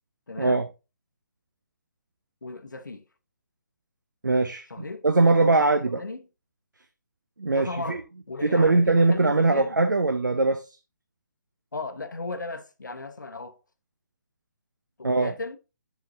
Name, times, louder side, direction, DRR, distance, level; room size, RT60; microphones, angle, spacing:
voice 1, 0.3-0.6 2.4-3.1 4.7-5.0 5.4-5.7 5.9-6.2 7.5-8.0 8.3-9.7 11.7-13.6 15.0-15.6, left 3 dB, 80° left, 0.8 m, -36 dB
voice 2, 4.2-6.0 7.4-8.0 8.4-10.8 15.0-15.3, right 3 dB, 85° right, 0.6 m, -21 dB
9.6 x 4.1 x 2.6 m
figure-of-eight pair, 140°, 10 cm